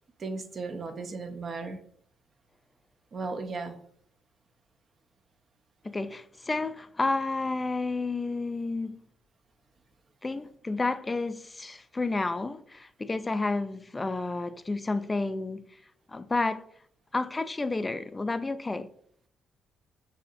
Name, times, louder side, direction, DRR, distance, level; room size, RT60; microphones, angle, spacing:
voice 1, 0.2-1.8 3.1-3.8, right 3 dB, 45° right, 0.6 m, -35 dB
voice 2, 5.8-9.0 10.2-15.7 16.1-16.7 17.1-18.9, left 3 dB, 20° left, 0.3 m, -31 dB
6.7 x 2.8 x 2.5 m
cardioid pair, 90°, 0 cm